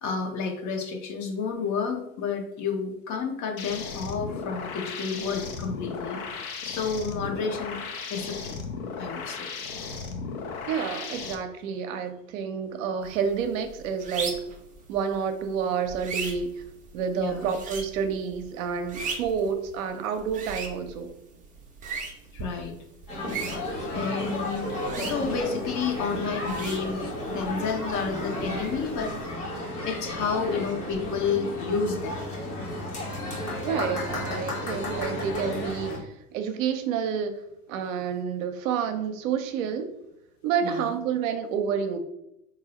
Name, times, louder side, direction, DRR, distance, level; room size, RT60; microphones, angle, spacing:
voice 1, 0.0-7.8 8.1-8.6 9.0-9.5 17.2-17.5 22.3-22.8 23.9-24.6 25.0-29.2 29.8-32.2 40.6-40.9, left 5 dB, 40° left, 3 dB, 0.7 m, -30 dB
sound 1, 3.6-11.4, left 5 dB, 70° left, 0.8 m, -36 dB
voice 2, 10.7-14.4 14.9-16.6 16.9-21.1 33.6-37.3 37.7-39.9 40.4-42.0, right 7 dB, 65° right, 7 dB, 0.6 m, -29 dB
sound 2, 13.0-29.3, right 4 dB, 20° right, 0.5 m, -40 dB
sound 3, 23.1-36.0, left 1 dB, 90° left, 1.4 m, -33 dB
3.9 x 2.6 x 2.9 m, 0.82 s
hypercardioid pair, 95°, 45 cm